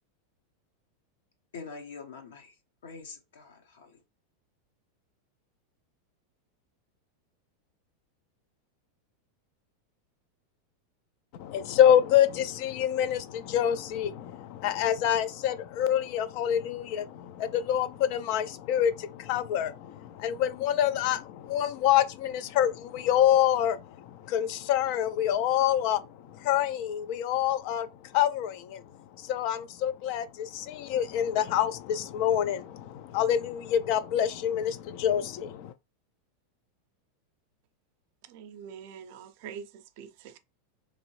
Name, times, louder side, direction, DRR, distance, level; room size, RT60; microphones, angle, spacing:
voice 1, 1.5-2.5 2.8-4.0, left 4 dB, 80° left, 0.9 m, -44 dB
voice 2, 11.4-27.9 28.1-28.8 29.2-35.7, left 10 dB, 55° left, 0.3 m, -26 dB
voice 3, 38.2-40.4, right 7 dB, 60° right, 0.5 m, -45 dB
2.9 x 2.6 x 3.1 m
hypercardioid pair, 110°, 0 cm